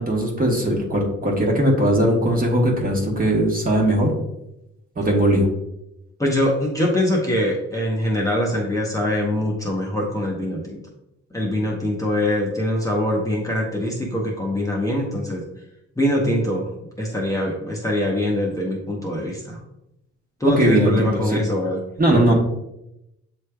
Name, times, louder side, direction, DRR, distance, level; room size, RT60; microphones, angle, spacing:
voice 1, 0.0-4.1 5.0-5.5 20.6-21.4 22.0-22.3, right 1 dB, 30° right, 0 dB, 1.2 m, -19 dB
voice 2, 6.2-10.8 11.3-15.4 16.0-19.6 20.4-21.8 22.1-22.3, left 1 dB, 10° left, -3 dB, 0.8 m, -23 dB
7.3 x 3.2 x 2.2 m, 0.86 s
cardioid pair, 90°, 30 cm